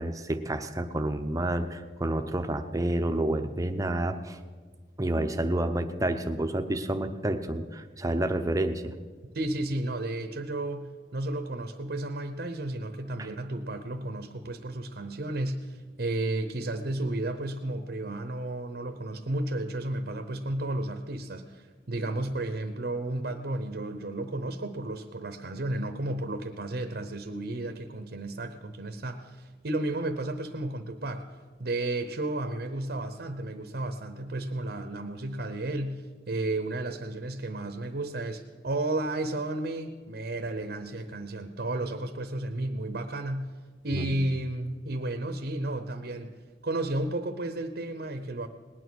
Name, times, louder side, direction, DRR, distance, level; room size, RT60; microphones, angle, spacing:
voice 1, 0.0-4.4 5.0-9.0 13.2-13.3 43.9-44.1, right 1 dB, 20° right, 7 dB, 0.7 m, -29 dB
voice 2, 9.3-31.3 31.6-43.5 43.8-46.3 46.6-48.5, right 2 dB, 60° right, 8 dB, 0.8 m, -33 dB
19.0 x 9.5 x 6.2 m, 1.5 s
head